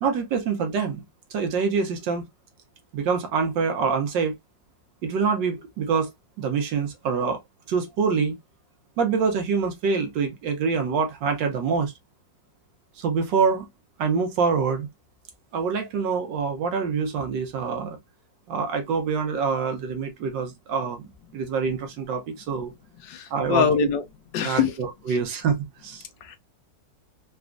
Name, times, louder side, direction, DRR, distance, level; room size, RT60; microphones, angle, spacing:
voice 1, 0.0-1.0 1.3-2.2 2.9-4.3 5.0-6.1 6.4-7.4 7.7-8.4 9.0-11.9 13.0-13.7 14.0-14.9 15.5-18.0 18.5-21.0 21.3-22.7 23.3-23.9 24.4-26.0, right 5 dB, 80° right, 1.5 m, -25 dB
voice 2, 23.0-24.0 24.3-24.7 25.1-25.2 26.2-26.4, left 7 dB, 80° left, 1.3 m, -24 dB
4.1 x 2.3 x 2.4 m
omnidirectional pair, 2.0 m